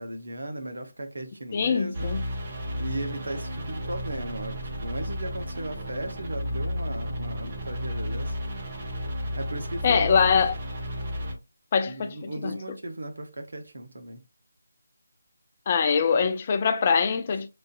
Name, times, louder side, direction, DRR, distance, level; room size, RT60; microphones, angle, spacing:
voice 1, 0.0-2.1 2.8-8.4 9.3-10.4 11.8-14.2, right 1 dB, 60° right, 0.8 m, -36 dB
voice 2, 1.5-2.2 9.8-10.5 11.7-12.6 15.7-17.5, left 6 dB, 30° left, 0.4 m, -23 dB
sound 1, 1.9-11.3, equal, 35° right, 1.0 m, -33 dB
4.0 x 2.5 x 2.4 m
figure-of-eight pair, 155°, 0 cm